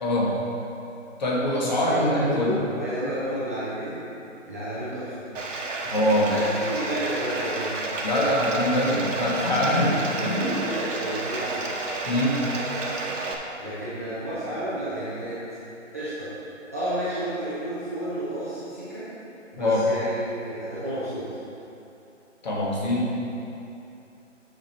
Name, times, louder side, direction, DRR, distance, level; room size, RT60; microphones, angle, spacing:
voice 1, 0.0-0.4 1.2-2.5 5.9-6.3 8.0-9.9 10.2-10.6 12.1-12.4 19.6-19.8 22.4-23.1, left 1 dB, 35° left, -4 dB, 1.5 m, -23 dB
voice 2, 1.7-4.0 4.5-5.1 6.2-8.0 9.8-11.7 13.6-15.4 15.9-16.3 16.7-19.1 19.5-21.2, right 1 dB, 15° right, -14 dB, 0.6 m, -31 dB
Bathtub (filling or washing), 5.3-13.3, right 3 dB, 80° right, 1.2 m, -31 dB
7.6 x 6.4 x 4.3 m, 2.8 s
hypercardioid pair, 165°, 38 cm